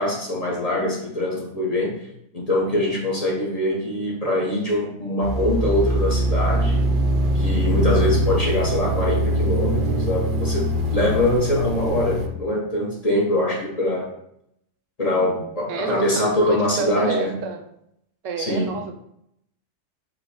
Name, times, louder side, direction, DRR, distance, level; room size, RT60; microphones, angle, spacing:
voice 1, 0.0-2.0 2.3-6.9 7.3-14.1 15.0-17.4 18.4-18.7, left 1 dB, 35° left, -3 dB, 0.8 m, -23 dB
sound 1, 5.2-12.3, right 1 dB, 55° right, 0.6 m, -22 dB
voice 2, 15.7-17.6 18.2-18.9, right 5 dB, 80° right, 5 dB, 0.9 m, -29 dB
4.8 x 2.1 x 4.6 m, 0.76 s
omnidirectional pair, 1.3 m